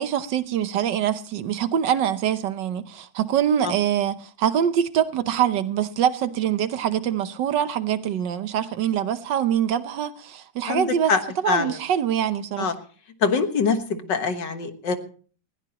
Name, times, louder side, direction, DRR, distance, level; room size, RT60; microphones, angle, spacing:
voice 1, 0.0-11.1 11.4-12.7, right 9 dB, 70° right, 1.5 m, -24 dB
voice 2, 10.7-11.2 11.5-11.8 12.6-12.7 13.2-15.0, left 5 dB, 65° left, 2.1 m, -24 dB
20.0 x 16.0 x 2.9 m
omnidirectional pair, 2.0 m